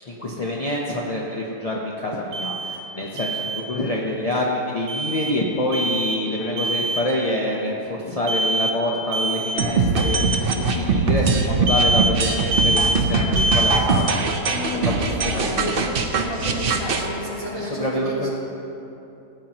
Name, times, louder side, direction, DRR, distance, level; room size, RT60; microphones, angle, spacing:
voice 1, 0.1-14.3 14.7-15.8 17.2-18.3, left 1 dB, 40° left, -3 dB, 0.5 m, -26 dB
Alarm, 2.3-2.8 3.2-3.6 4.9-5.3 5.7-6.2 6.6-7.1 8.3-8.8 9.1-9.6 10.0-10.4 11.7-12.2 12.5-13.0 13.4-13.8, right 2 dB, 80° right, 1.7 m, -23 dB
sound 1, 9.6-17.1, right 4 dB, 50° right, 0.7 m, -22 dB
voice 2, 14.5-15.7 16.2-18.3, left 1 dB, 20° right, -9 dB, 2.9 m, -31 dB
17.0 x 9.1 x 2.9 m, 2.9 s
omnidirectional pair, 1.8 m